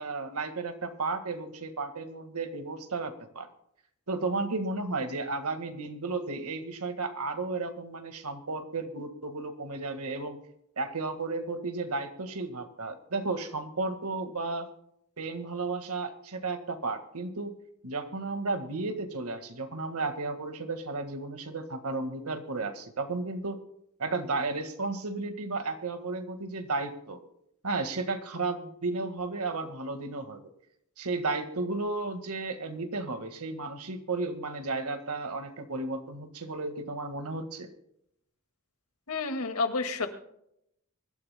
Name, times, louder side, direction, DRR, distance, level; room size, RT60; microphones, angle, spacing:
voice 1, 0.0-3.5 4.1-10.4 10.8-14.7 15.2-17.5 17.8-23.6 24.0-27.2 27.6-30.5 31.0-37.7, right 3 dB, 80° right, 8 dB, 1.7 m, -33 dB
voice 2, 39.1-40.1, left 4 dB, 80° left, 6 dB, 2.0 m, -29 dB
24.5 x 13.0 x 2.2 m, 0.77 s
head